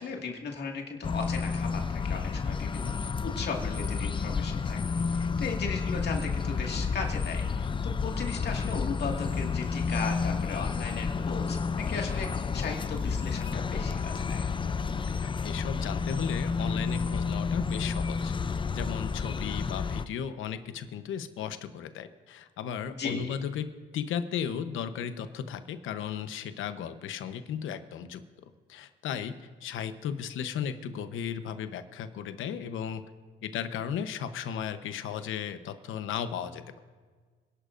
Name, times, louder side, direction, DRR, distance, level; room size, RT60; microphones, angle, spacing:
voice 1, 0.0-4.8 5.1-14.5 22.9-23.4, left 4 dB, 55° left, 1 dB, 2.1 m, -37 dB
sound 1, 1.0-20.0, left 5 dB, 25° left, 0.5 m, -30 dB
voice 2, 15.2-23.6 23.9-28.2 28.7-29.3 29.6-33.0 33.4-36.8, left 8 dB, 80° left, 9 dB, 1.0 m, -35 dB
27.0 x 11.5 x 2.6 m, 1.5 s
cardioid pair, 90°, 20 cm